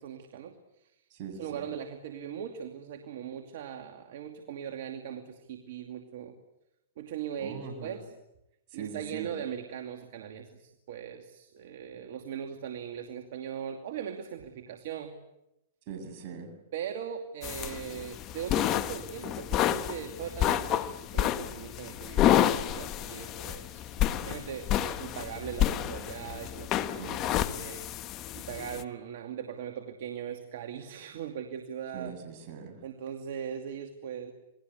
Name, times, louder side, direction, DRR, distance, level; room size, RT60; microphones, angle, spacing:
voice 1, 0.0-0.9 1.4-6.4 7.0-8.1 8.7-15.2 16.7-23.9 24.2-27.9 28.3-32.1 32.8-34.3, right 8 dB, 65° right, 5 dB, 2.6 m, -40 dB
voice 2, 1.1-1.6 7.4-8.0 8.7-9.3 15.9-16.5 27.0-27.3 31.9-32.8, right 6 dB, 50° right, 7 dB, 7.4 m, -41 dB
sound 1, 17.4-28.8, left 12 dB, 35° left, 1.2 m, -30 dB
28.5 x 21.0 x 8.2 m, 0.88 s
hypercardioid pair, 125°, 0 cm